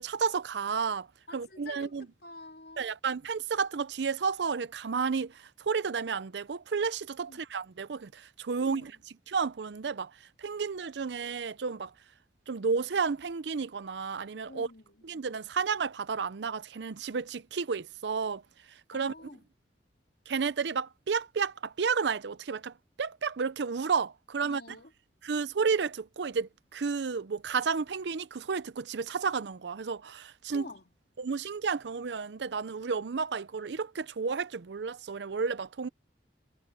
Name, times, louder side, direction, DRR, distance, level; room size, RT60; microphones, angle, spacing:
voice 1, 0.0-1.1 1.3-2.1 2.8-8.9 9.3-10.1 10.4-11.9 12.5-14.7 15.0-18.4 18.9-19.1 20.3-24.6 25.2-30.6 31.2-35.9, right 5 dB, 70° right, 0.6 m, -32 dB
voice 2, 1.3-2.9 7.3-7.4 8.6-9.0 14.5-15.0 18.9-19.5 24.4-24.9 30.5-30.9, left 2 dB, 65° left, 3.5 m, -49 dB
head